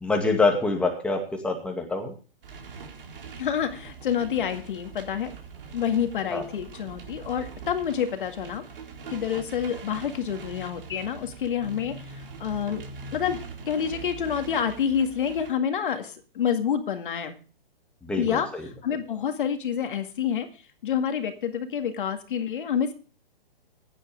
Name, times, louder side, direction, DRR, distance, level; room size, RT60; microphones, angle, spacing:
voice 1, 0.0-2.1 6.3-6.4 18.0-18.6, left 3 dB, 5° left, 2 dB, 2.2 m, -25 dB
sound 1, 2.4-15.5, right 5 dB, 65° right, 4.2 m, -42 dB
voice 2, 3.4-5.3 5.7-8.6 9.1-12.8 13.1-13.4 13.7-17.4 18.2-20.5 20.8-22.9, left 8 dB, 60° left, 6 dB, 2.1 m, -28 dB
16.0 x 11.0 x 3.5 m, 0.37 s
hypercardioid pair, 140°, 29 cm